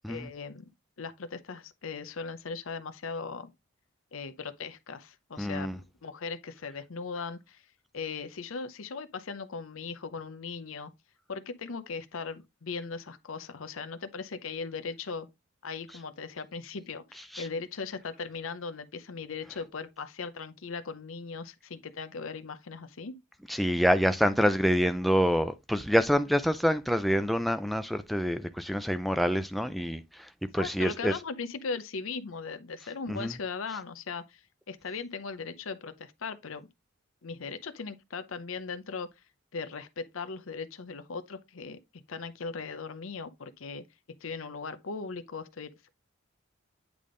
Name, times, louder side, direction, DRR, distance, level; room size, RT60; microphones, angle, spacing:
voice 1, 0.1-0.7 1.0-3.5 4.1-7.6 7.9-10.9 11.3-15.3 15.6-23.2 30.6-34.4 34.7-36.7 37.2-39.1 39.5-41.8 42.1-43.8 44.2-45.9, left 4 dB, 80° left, 0.7 m, -38 dB
voice 2, 5.4-5.8 17.3-17.5 23.5-31.1 33.1-33.3, equal, ahead, 0.3 m, -27 dB
8.4 x 3.5 x 3.8 m
head